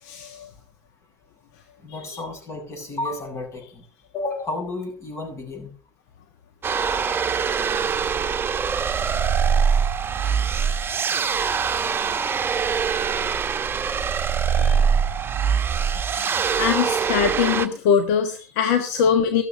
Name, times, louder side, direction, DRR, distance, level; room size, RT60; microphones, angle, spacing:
voice 1, 0.0-0.5 1.9-2.0 14.5-14.8 15.9-19.4, left 7 dB, 70° left, 7 dB, 1.4 m, -23 dB
voice 2, 1.8-3.8 4.1-5.7 11.2-11.3, left 2 dB, 35° left, 3 dB, 7.9 m, -32 dB
sound 1, 6.6-17.7, right 6 dB, 25° right, 1.1 m, -23 dB
14.0 x 13.0 x 3.4 m, 0.39 s
hypercardioid pair, 80°, 8 cm